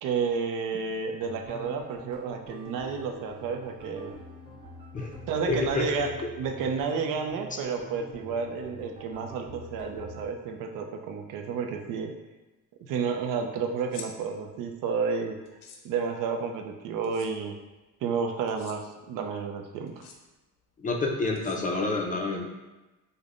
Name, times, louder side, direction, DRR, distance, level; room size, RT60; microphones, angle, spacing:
voice 1, 0.0-4.2 5.3-12.1 12.8-15.4 15.8-17.6 18.0-20.0, right 5 dB, 80° right, 4 dB, 0.5 m, -31 dB
sound 1, 1.2-10.3, equal, 15° right, 1.1 m, -46 dB
voice 2, 5.5-5.9 20.8-22.5, left 3 dB, 25° left, 1 dB, 0.3 m, -28 dB
sound 2, 13.8-14.1 15.4-15.8 17.0-17.3 18.5-18.8 19.9-20.2 21.3-21.9, left 6 dB, 90° left, 0.6 m, -46 dB
5.1 x 2.1 x 2.4 m, 1.1 s
cardioid pair, 130°, 32 cm